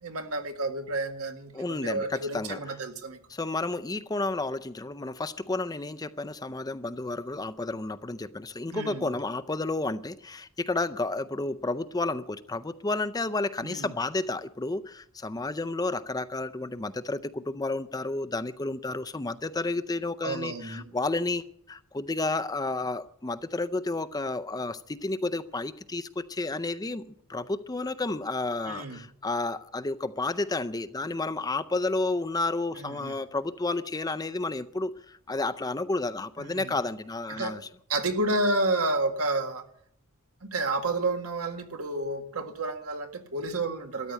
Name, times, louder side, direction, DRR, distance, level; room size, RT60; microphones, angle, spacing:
voice 1, 0.0-3.2 8.7-9.1 13.6-13.9 20.2-20.9 28.7-29.0 32.8-33.1 36.4-36.7 37.3-37.6 37.9-39.6 40.4-44.1, right 2 dB, 85° right, 1.8 m, -30 dB
voice 2, 1.5-2.6 3.3-27.0 27.3-37.6, left 2 dB, 15° left, 0.5 m, -31 dB
13.5 x 10.0 x 8.2 m
head